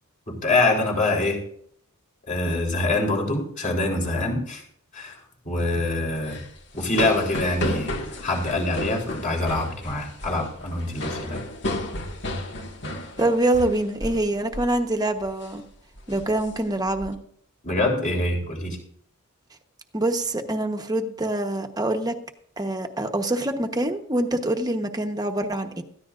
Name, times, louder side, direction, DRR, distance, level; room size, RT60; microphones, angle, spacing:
voice 1, 0.3-1.4 2.3-4.6 4.9-5.2 5.5-6.4 6.7-11.4 17.6-18.8, left 2 dB, 35° left, -1 dB, 3.6 m, -25 dB
sound 1, 6.2-14.3 14.5-14.8 15.2-15.5 16.0-17.1, left 1 dB, 55° left, 1.9 m, -33 dB
voice 2, 13.2-15.6 16.1-17.2 19.9-22.2 22.6-25.8, right 1 dB, 20° right, 5 dB, 1.1 m, -25 dB
19.0 x 14.0 x 2.5 m, 0.66 s
head